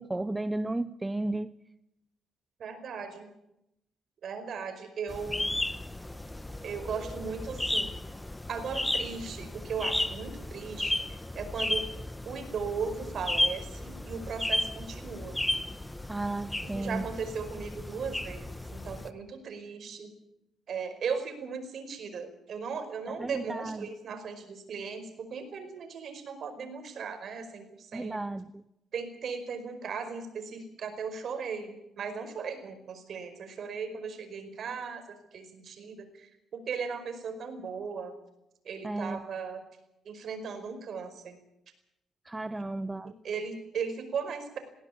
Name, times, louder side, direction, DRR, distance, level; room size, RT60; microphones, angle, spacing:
voice 1, 0.0-1.5 16.1-17.1 23.2-23.9 27.9-28.6 38.8-39.2 42.3-43.1, right 2 dB, 15° right, 0.8 m, -33 dB
voice 2, 2.6-3.3 4.2-5.5 6.6-7.9 8.5-11.9 12.2-15.4 16.6-20.1 20.7-28.2 28.9-38.1 38.6-39.6 40.0-41.4 43.0-44.6, right 5 dB, 60° right, 5.0 m, -37 dB
sound 1, 5.1-19.1, left 1 dB, 10° left, 1.3 m, -34 dB
20.5 x 17.0 x 8.6 m
cardioid pair, 90°, 0 cm